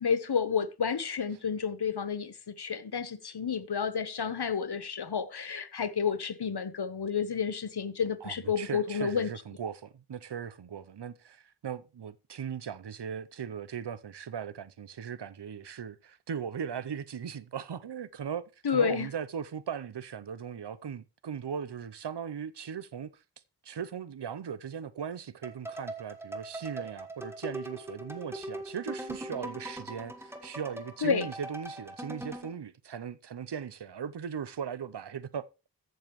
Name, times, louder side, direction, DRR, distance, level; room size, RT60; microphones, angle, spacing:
voice 1, 0.0-9.3 18.6-19.1 31.0-31.3, left 6 dB, 70° left, 0.9 m, -30 dB
voice 2, 8.2-23.1 23.6-35.4, right 7 dB, 85° right, 0.7 m, -38 dB
sound 1, 25.4-32.5, right 1 dB, 5° right, 1.4 m, -41 dB
14.0 x 7.1 x 3.1 m
wide cardioid pair, 40°, 40 cm